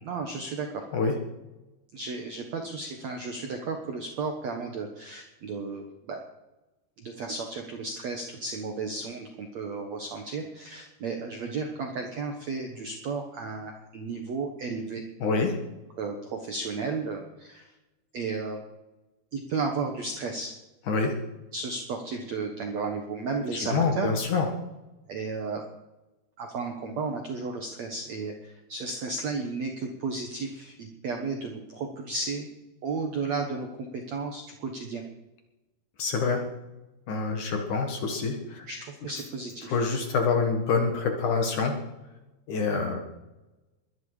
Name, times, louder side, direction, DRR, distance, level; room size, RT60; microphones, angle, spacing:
voice 1, 0.0-0.8 1.9-6.2 7.0-15.0 16.0-17.7 18.1-18.6 19.3-20.5 21.5-24.1 25.1-25.6 26.4-32.5 32.8-33.7 33.9-35.0 38.7-39.8, right 4 dB, 65° right, 3 dB, 1.7 m, -33 dB
voice 2, 15.2-15.6 20.9-21.1 23.5-24.5 36.0-36.4 37.1-38.7 39.7-41.8 42.5-43.0, left 4 dB, 55° left, 4 dB, 2.6 m, -26 dB
22.0 x 10.5 x 5.0 m, 1.0 s
omnidirectional pair, 5.0 m